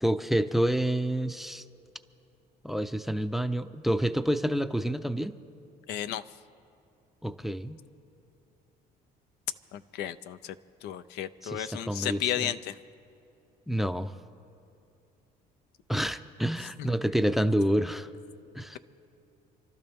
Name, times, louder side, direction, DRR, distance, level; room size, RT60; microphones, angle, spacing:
voice 1, 0.0-1.6 2.6-5.3 7.2-7.8 11.4-12.5 13.7-14.1 15.9-18.1 18.5-18.8, equal, ahead, 12 dB, 0.5 m, -28 dB
voice 2, 5.9-6.2 9.7-10.6 10.8-12.8, left 11 dB, 80° left, 13 dB, 0.5 m, -33 dB
29.0 x 12.5 x 3.5 m, 2.7 s
cardioid pair, 110°, 17 cm